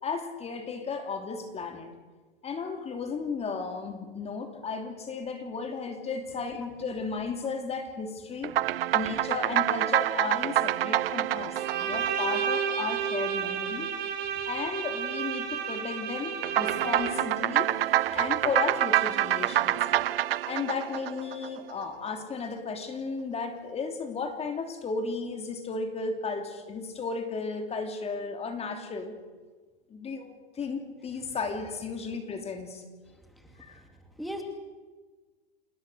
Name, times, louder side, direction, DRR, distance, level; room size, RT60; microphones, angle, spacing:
voice 1, 0.0-1.9 2.4-8.5 8.9-13.9 14.5-17.7 18.1-20.0 20.4-29.1 29.9-32.8 33.6-33.8, left 4 dB, 20° left, 6 dB, 2.9 m, -34 dB
sound 1, 8.4-13.1 16.4-21.8, right 13 dB, 75° right, 0.9 m, -27 dB
Bowed string instrument, 11.6-17.4, right 8 dB, 35° right, 5.2 m, -32 dB
voice 2, 33.3-33.9 34.2-34.4, equal, ahead, 3 dB, 2.7 m, -40 dB
28.0 x 19.5 x 6.7 m, 1.3 s
hypercardioid pair, 125°, 29 cm